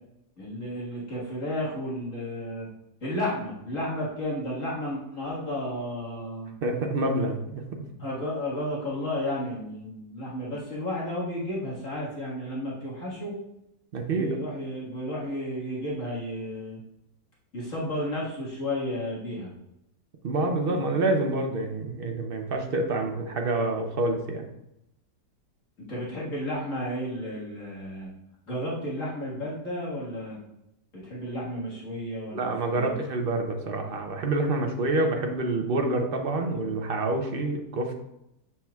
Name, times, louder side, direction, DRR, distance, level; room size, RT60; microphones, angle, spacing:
voice 1, 0.4-2.7 3.0-6.5 8.0-13.3 14.1-16.8 17.5-19.5 20.8-20.9 25.9-28.1 28.5-30.4 31.0-33.0, left 1 dB, 50° left, -6 dB, 2.0 m, -32 dB
voice 2, 6.6-7.8 13.9-14.4 20.2-24.5 32.3-38.0, right 2 dB, 55° right, 3 dB, 0.6 m, -27 dB
7.5 x 5.8 x 2.3 m, 0.84 s
omnidirectional pair, 1.8 m